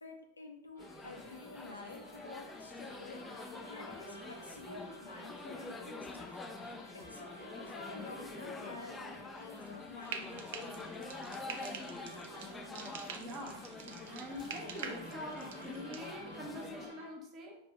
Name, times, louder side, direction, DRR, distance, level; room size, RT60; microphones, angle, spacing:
voice 1, 0.0-3.2 3.7-6.3 6.9-11.0, left 3 dB, 80° left, 3 dB, 0.6 m, -50 dB
sound 1, 0.7-17.1, right 2 dB, 80° right, 1.3 m, -54 dB
sound 2, 0.8-16.9, left 3 dB, 15° left, 0.3 m, -46 dB
Frying (food), 10.0-16.1, right 7 dB, 55° right, 0.4 m, -47 dB
voice 2, 13.1-13.6 14.1-17.6, equal, 30° right, 1 dB, 0.8 m, -45 dB
3.3 x 2.8 x 3.3 m, 0.78 s
figure-of-eight pair, 90°, 0 cm